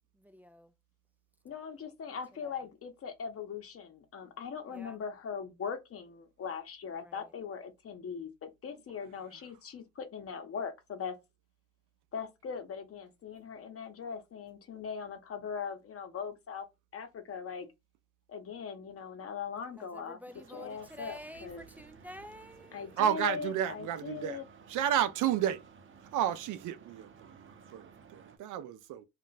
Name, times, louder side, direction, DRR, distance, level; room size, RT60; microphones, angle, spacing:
voice 1, 0.1-0.7 2.3-2.6 4.7-5.0 6.9-7.3 19.8-23.0, equal, 5° right, 0.3 m, -50 dB
voice 2, 1.4-11.2 12.1-16.7 16.9-17.7 18.3-20.2 20.5-21.6 22.7-24.4, left 6 dB, 50° left, 0.8 m, -40 dB
sound 1, 20.3-28.4, right 6 dB, 40° right, 0.6 m, -56 dB
voice 3, 23.0-24.4 24.7-25.6 26.1-29.1, right 10 dB, 85° right, 0.5 m, -31 dB
2.4 x 2.1 x 3.9 m
cardioid pair, 90°, 30 cm